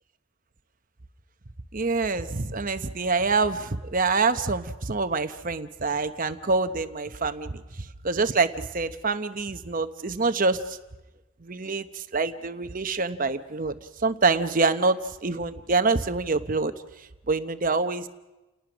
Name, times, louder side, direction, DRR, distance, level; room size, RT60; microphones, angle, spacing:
voice 1, 1.7-10.8 11.4-16.7 17.3-18.1, right 3 dB, 40° right, 10 dB, 0.9 m, -26 dB
30.0 x 18.5 x 6.2 m, 1.1 s
head